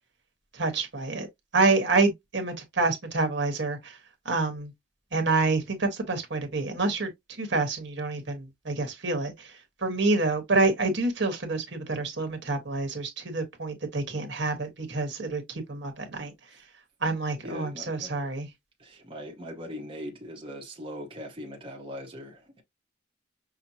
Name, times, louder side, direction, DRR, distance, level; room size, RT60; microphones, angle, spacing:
voice 1, 0.5-1.3 1.5-4.0 4.2-4.7 5.1-7.1 7.4-9.5 9.8-16.3 17.0-18.5, right 3 dB, 60° right, 1.2 m, -27 dB
voice 2, 17.4-18.3 18.8-22.6, equal, 25° right, 0.9 m, -40 dB
5.9 x 2.1 x 2.7 m
head